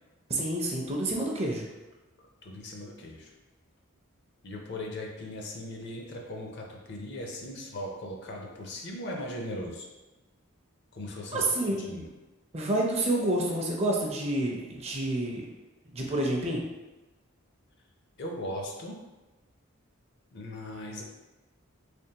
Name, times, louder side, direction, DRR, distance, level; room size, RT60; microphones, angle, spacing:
voice 1, 0.3-1.7 11.3-11.8 12.5-15.4 15.9-16.6, right 1 dB, 30° right, -1 dB, 0.5 m, -28 dB
voice 2, 2.4-3.3 4.4-9.9 10.9-12.1 18.2-19.0 20.3-21.0, left 1 dB, 55° left, 0 dB, 0.6 m, -38 dB
3.4 x 3.4 x 2.8 m, 1.1 s
head